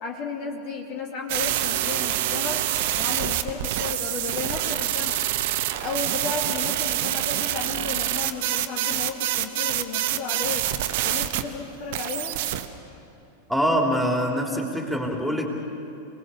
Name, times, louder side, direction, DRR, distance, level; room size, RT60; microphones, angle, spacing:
voice 1, 0.0-2.7 3.0-5.3 5.8-10.7 11.0-12.4, left 4 dB, 40° left, 1 dB, 2.4 m, -33 dB
sound 1, 1.3-11.4 11.9-12.7, right 13 dB, 50° right, 1.2 m, -26 dB
voice 2, 13.5-15.5, equal, ahead, 1 dB, 3.4 m, -24 dB
28.0 x 20.0 x 7.1 m, 2.8 s
figure-of-eight pair, 90°, 0 cm